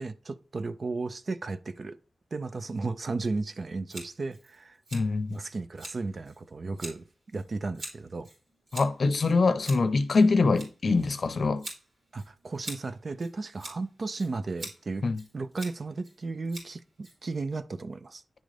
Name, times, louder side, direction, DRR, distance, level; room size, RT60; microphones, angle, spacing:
voice 1, 0.0-2.0 2.3-4.8 5.3-8.3 12.1-15.1 15.3-18.2, right 3 dB, 45° right, 0.5 m, -34 dB
Scissors, 3.9-17.6, right 1 dB, 80° right, 3.7 m, -46 dB
voice 2, 4.9-5.4 8.7-11.6 15.0-15.2, left 3 dB, 55° left, 0.7 m, -24 dB
10.5 x 3.8 x 3.3 m
wide cardioid pair, 160°, 0 cm